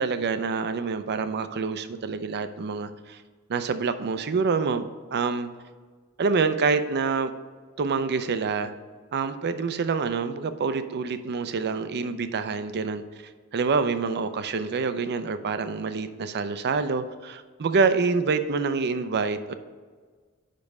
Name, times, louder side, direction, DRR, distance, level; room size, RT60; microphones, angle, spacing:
voice 1, 0.0-3.2 3.5-5.5 6.2-7.3 7.8-8.7 9.1-13.0 13.5-19.5, right 4 dB, 50° right, 11 dB, 0.5 m, -26 dB
5.3 x 5.2 x 5.9 m, 1.5 s
head